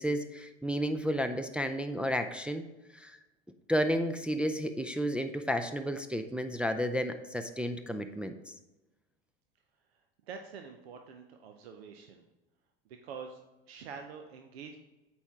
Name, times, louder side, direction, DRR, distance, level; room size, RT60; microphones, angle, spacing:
voice 1, 0.0-2.6 3.0-3.2 3.7-8.3, equal, 5° right, 6 dB, 0.3 m, -32 dB
voice 2, 10.3-12.2 13.0-13.4 13.7-14.8, right 6 dB, 80° right, 4 dB, 0.7 m, -46 dB
8.2 x 4.4 x 3.6 m, 1.1 s
hypercardioid pair, 90°, 31 cm